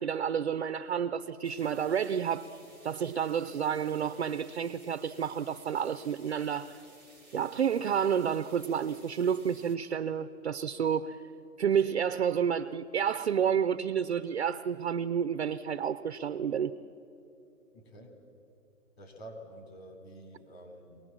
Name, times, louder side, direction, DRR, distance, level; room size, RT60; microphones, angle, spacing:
voice 1, 0.0-2.6 2.8-6.8 7.3-11.2 11.6-16.7, right 8 dB, 50° right, 11 dB, 0.5 m, -30 dB
sound 1, 1.4-9.8, right 2 dB, 10° left, 0.8 m, -57 dB
voice 2, 17.7-18.1 19.0-21.0, right 1 dB, 45° left, 3 dB, 3.4 m, -48 dB
23.5 x 18.5 x 7.2 m, 2.8 s
hypercardioid pair, 165°, 44 cm